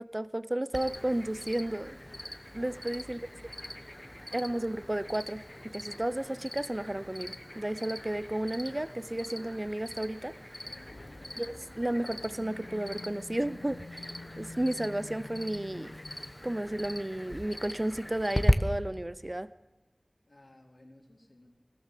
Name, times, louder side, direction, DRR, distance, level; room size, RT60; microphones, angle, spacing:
voice 1, 0.0-2.0 2.5-3.5 4.3-5.4 5.7-10.3 11.4-16.0 16.4-19.5, right 1 dB, 30° right, 15 dB, 0.6 m, -33 dB
Cricket, 0.7-18.5, left 1 dB, 15° left, 1.1 m, -38 dB
sound 1, 10.6-18.3, left 3 dB, 90° left, 0.6 m, -49 dB
voice 2, 10.9-11.3 20.3-21.6, left 1 dB, 65° left, -2 dB, 3.3 m, -58 dB
21.5 x 17.0 x 7.5 m, 1.1 s
wide cardioid pair, 45°, 0 cm